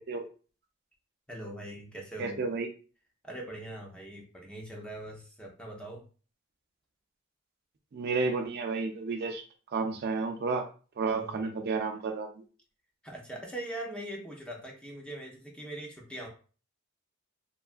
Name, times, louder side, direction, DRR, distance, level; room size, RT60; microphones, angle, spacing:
voice 1, 1.3-2.4 3.2-6.0 11.1-11.5 13.0-16.3, right 1 dB, 5° left, -1 dB, 0.5 m, -41 dB
voice 2, 2.2-2.7 7.9-9.4 9.7-10.6 11.0-12.4, right 4 dB, 50° right, 5 dB, 0.4 m, -31 dB
2.9 x 2.3 x 2.4 m, 0.37 s
head